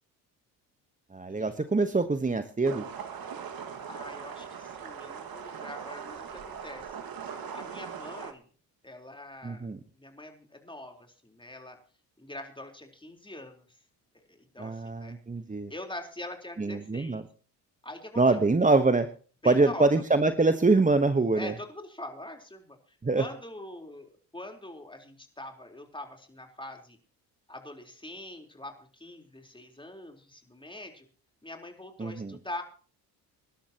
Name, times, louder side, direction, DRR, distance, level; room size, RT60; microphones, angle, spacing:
voice 1, 1.1-2.8 9.4-9.8 14.6-15.7 16.6-17.2 18.2-19.1 19.4-21.5 23.0-23.2 32.0-32.4, right 3 dB, 15° right, 9 dB, 1.2 m, -24 dB
sound 1, 2.6-8.3, right 7 dB, 50° right, 2.0 m, -40 dB
voice 2, 3.9-7.0 7.5-8.4 8.8-9.7 9.9-11.8 12.2-13.6 14.3-15.2 15.7-17.2 17.8-18.4 19.4-19.9 21.3-22.8 23.2-27.0 27.5-31.1 31.4-32.6, left 1 dB, 10° left, 3 dB, 4.0 m, -43 dB
26.0 x 12.0 x 3.0 m, 0.40 s
hypercardioid pair, 55°, 46 cm